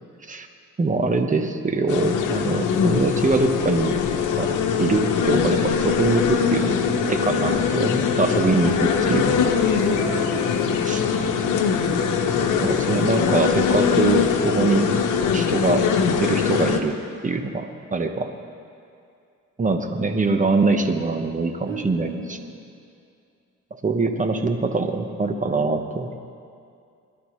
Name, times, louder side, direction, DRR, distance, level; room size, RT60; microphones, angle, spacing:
voice 1, 0.8-4.0 4.4-6.8 7.1-8.7 9.1-9.4 10.9-11.0 12.6-14.9 15.3-18.3 19.6-22.4 23.7-26.1, right 3 dB, 25° right, 6 dB, 1.2 m, -23 dB
sound 1, 1.9-16.8, left 6 dB, 80° left, 1.1 m, -22 dB
voice 2, 8.4-8.9 9.9-11.0 21.7-22.4, right 4 dB, 85° right, -5 dB, 3.1 m, -35 dB
22.0 x 12.0 x 3.2 m, 2.4 s
cardioid pair, 90°, 30 cm